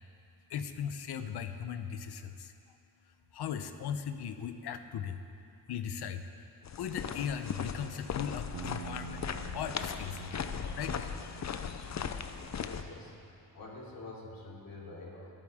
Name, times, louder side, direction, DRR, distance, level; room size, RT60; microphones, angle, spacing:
voice 1, 0.5-2.5 3.3-5.2 5.7-6.3 6.8-10.3 10.8-11.0, left 8 dB, 80° left, 9 dB, 0.9 m, -38 dB
sound 1, 6.6-12.8, left 7 dB, 45° left, 0.7 m, -38 dB
sound 2, 8.5-13.2, right 14 dB, 75° right, 0.8 m, -49 dB
voice 2, 12.6-13.2 13.5-15.3, left 2 dB, 60° left, -4 dB, 3.5 m, -47 dB
24.0 x 9.2 x 3.6 m, 2.6 s
cardioid pair, 90°, 39 cm